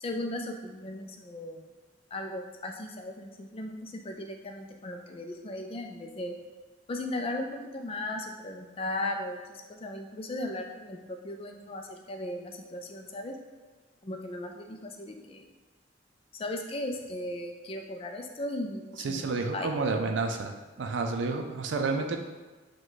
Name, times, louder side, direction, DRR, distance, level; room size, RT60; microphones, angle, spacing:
voice 1, 0.0-1.7 2.1-6.4 6.9-7.5 7.7-13.4 14.0-15.4 16.4-19.7, left 1 dB, 30° left, 3 dB, 0.4 m, -37 dB
voice 2, 19.0-20.5 20.8-22.2, right 3 dB, 75° right, 4 dB, 0.4 m, -30 dB
5.0 x 2.3 x 3.9 m, 1.3 s
head